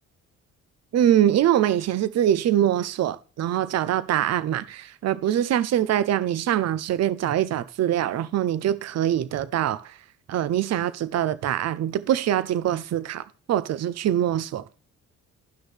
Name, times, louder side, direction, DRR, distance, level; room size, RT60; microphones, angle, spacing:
voice 1, 0.9-10.0 10.3-14.6, right 11 dB, 60° right, 0.7 m, -23 dB
12.5 x 6.2 x 3.3 m
cardioid pair, 90°, 30 cm